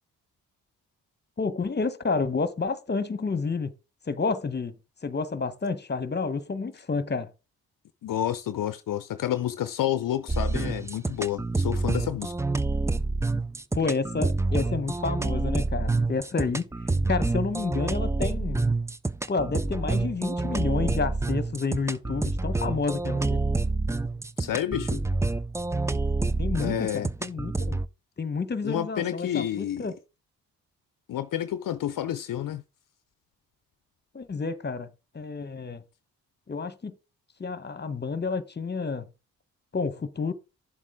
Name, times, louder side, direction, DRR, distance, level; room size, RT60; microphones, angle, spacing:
voice 1, 1.4-3.7 4.1-4.7 5.0-7.3 13.7-16.6 17.1-18.7 19.3-23.4 26.4-27.8 28.2-29.9 34.1-35.8 36.5-36.9 37.4-39.1 39.7-40.3, left 4 dB, 25° left, 1.1 m, -30 dB
voice 2, 8.0-12.3 24.4-25.0 26.6-27.1 28.6-29.9 31.1-32.6, left 11 dB, 55° left, 0.7 m, -29 dB
sound 1, 10.3-27.9, right 3 dB, 10° right, 0.4 m, -27 dB
10.0 x 7.4 x 3.6 m
hypercardioid pair, 45°, 39 cm